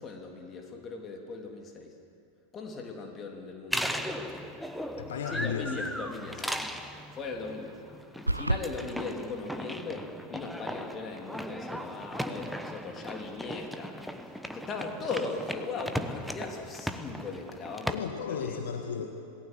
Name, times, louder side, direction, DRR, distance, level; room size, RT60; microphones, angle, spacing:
voice 1, 0.0-1.9 2.5-4.5 5.3-6.7 7.1-13.9 14.2-18.0 18.5-18.6 18.9-19.0, left 4 dB, 25° left, 2 dB, 3.3 m, -39 dB
sound 1, 3.7-18.0, equal, ahead, 1.1 m, -37 dB
voice 2, 5.0-5.8 17.9-19.1, left 7 dB, 60° left, 4 dB, 1.6 m, -34 dB
sound 2, 8.3-8.7, right 1 dB, 85° right, 0.6 m, -27 dB
27.0 x 18.5 x 7.7 m, 2.5 s
figure-of-eight pair, 90°, 0 cm